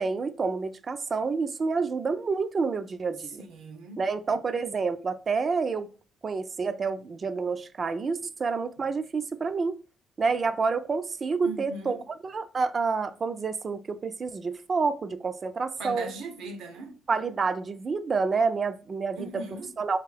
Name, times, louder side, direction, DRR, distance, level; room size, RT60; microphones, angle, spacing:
voice 1, 0.0-3.4 4.0-5.9 6.2-9.8 10.2-12.0 12.2-16.1 17.1-19.4 19.8-20.0, right 4 dB, 40° right, 0.4 m, -28 dB
voice 2, 3.4-4.0 11.4-12.0 15.8-17.0 19.1-19.7, right 2 dB, 85° right, 0.7 m, -39 dB
3.6 x 2.6 x 3.2 m
cardioid pair, 90°, 0 cm